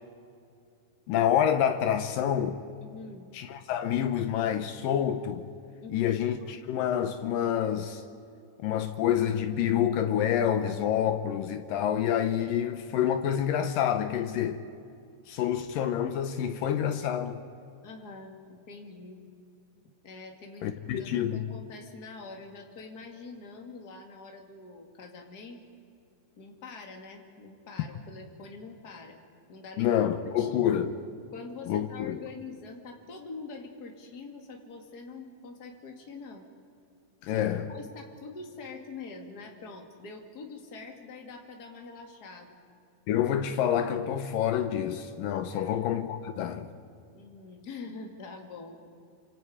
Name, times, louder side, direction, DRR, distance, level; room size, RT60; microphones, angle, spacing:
voice 1, 1.1-2.6 3.3-5.5 5.9-8.0 8.6-14.6 15.3-17.4 20.6-21.5 29.8-31.0 31.7-32.2 37.2-37.7 43.1-46.7, left 9 dB, 80° left, 2.0 m, -27 dB
voice 2, 2.8-3.3 5.8-6.1 17.8-19.2 20.0-25.6 26.4-29.2 29.5-30.0 30.4-30.6 31.3-36.5 37.3-42.6 45.5-45.8 47.1-48.8, left 4 dB, 30° left, 1.9 m, -45 dB
28.0 x 26.0 x 5.0 m
omnidirectional pair, 5.0 m